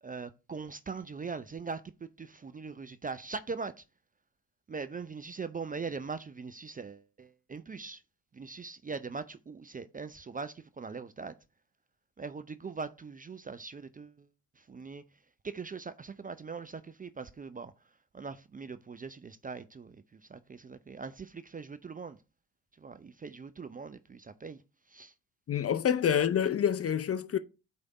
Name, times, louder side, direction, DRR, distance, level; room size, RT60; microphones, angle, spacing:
voice 1, 0.0-3.8 4.7-8.0 8.3-11.4 12.2-14.3 14.6-15.0 15.4-17.7 18.1-22.2 22.8-24.6 24.9-25.1 26.0-26.1, right 4 dB, 20° right, 0.5 m, -41 dB
voice 2, 25.5-27.4, left 8 dB, 30° left, 0.5 m, -27 dB
8.2 x 3.4 x 4.0 m
hypercardioid pair, 45°, 45 cm